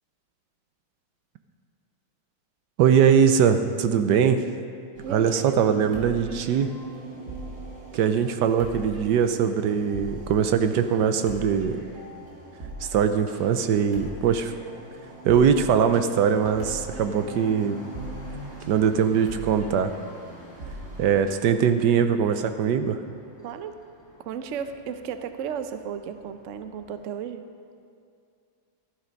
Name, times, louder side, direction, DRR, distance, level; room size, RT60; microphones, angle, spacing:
voice 1, 2.8-4.4 5.1-6.7 7.9-11.8 12.9-14.5 15.2-17.8 18.7-19.9 21.0-23.0, right 7 dB, 70° right, 9 dB, 1.2 m, -21 dB
sound 1, 4.9-21.3, right 1 dB, 45° right, 2.3 m, -41 dB
voice 2, 5.0-5.6 23.4-23.8 24.2-27.4, right 7 dB, 85° right, 9 dB, 0.6 m, -34 dB
sound 2, 12.9-27.2, left 1 dB, 15° left, 3.5 m, -48 dB
13.0 x 12.0 x 5.2 m, 2.3 s
omnidirectional pair, 2.2 m